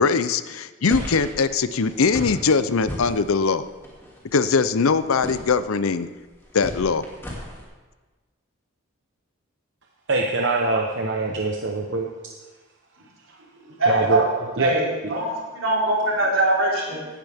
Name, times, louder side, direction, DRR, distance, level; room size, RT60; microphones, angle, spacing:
voice 1, 0.0-3.7 4.3-6.1 6.5-7.0, left 5 dB, 85° left, 13 dB, 0.6 m, -21 dB
sound 1, 0.9-7.6, left 1 dB, 10° left, 2.5 m, -37 dB
voice 2, 10.1-12.0 13.9-14.2 14.6-14.7, right 3 dB, 60° right, 0 dB, 1.0 m, -23 dB
voice 3, 13.8-14.2 14.6-17.1, right 1 dB, 75° right, -4 dB, 4.2 m, -22 dB
17.0 x 11.5 x 3.6 m, 1.3 s
head